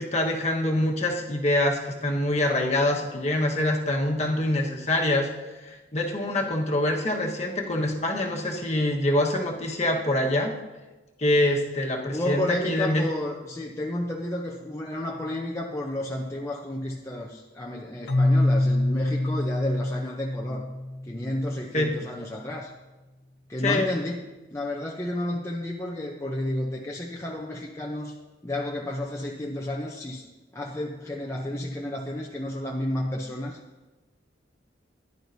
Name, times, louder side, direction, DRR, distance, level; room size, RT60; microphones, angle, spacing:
voice 1, 0.0-5.3 5.6-10.5 11.2-13.1 21.7-21.9 23.6-23.9, left 1 dB, 40° left, 0 dB, 1.3 m, -25 dB
voice 2, 12.1-20.7 21.0-22.7 23.5-24.2 24.5-28.1 28.4-30.2 30.5-33.6, left 1 dB, 15° left, -2 dB, 0.7 m, -31 dB
Keyboard (musical), 18.1-21.8, left 1 dB, 70° left, 0.8 m, -25 dB
14.5 x 11.0 x 2.7 m, 1.1 s
head